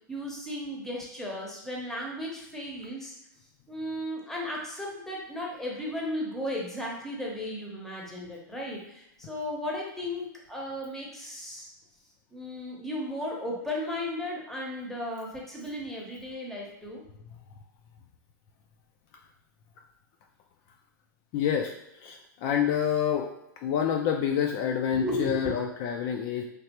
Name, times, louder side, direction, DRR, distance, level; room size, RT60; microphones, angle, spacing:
voice 1, 0.1-3.1 3.7-11.7 12.3-17.0 24.9-25.6, left 1 dB, 5° left, -2 dB, 0.8 m, -35 dB
voice 2, 21.3-23.3 23.6-26.4, left 8 dB, 45° left, 2 dB, 0.4 m, -28 dB
3.3 x 2.4 x 2.9 m, 0.82 s
hypercardioid pair, 125°, 11 cm